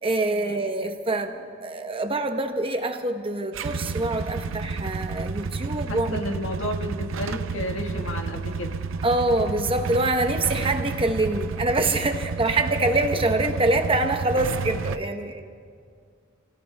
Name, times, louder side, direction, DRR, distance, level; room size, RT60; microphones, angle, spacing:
voice 1, 0.0-6.2 9.0-15.4, right 2 dB, 25° right, 5 dB, 0.9 m, -25 dB
Motorcycle / Engine starting / Idling, 3.5-15.0, right 4 dB, 75° right, 0.5 m, -31 dB
voice 2, 5.9-8.7, left 1 dB, 80° left, 3 dB, 1.5 m, -32 dB
29.5 x 17.5 x 2.3 m, 2.2 s
head